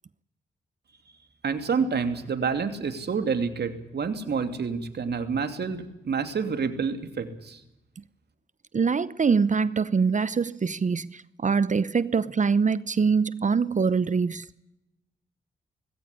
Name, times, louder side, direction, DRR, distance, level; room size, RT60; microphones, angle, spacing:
voice 1, 1.4-7.6, right 5 dB, 60° right, 2.8 m, -28 dB
voice 2, 8.7-14.5, right 5 dB, 40° right, 0.8 m, -24 dB
19.5 x 16.5 x 10.0 m
supercardioid pair, 40°, 19 cm